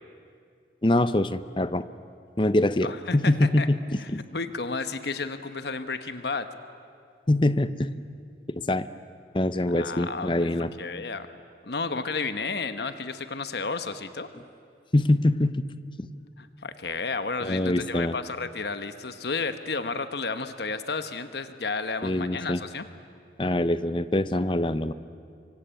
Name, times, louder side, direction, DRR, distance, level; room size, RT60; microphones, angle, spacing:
voice 1, 0.8-1.8 2.4-3.8 4.1-4.2 7.3-7.9 8.7-8.9 9.3-10.7 14.9-15.7 16.0-16.1 17.4-18.1 22.0-22.6 23.4-24.9, left 1 dB, 25° left, 13 dB, 0.7 m, -24 dB
voice 2, 2.8-3.7 4.0-6.5 9.7-11.3 11.6-14.3 16.4-22.9, left 4 dB, 70° left, 10 dB, 1.1 m, -32 dB
25.5 x 24.5 x 9.1 m, 2.4 s
head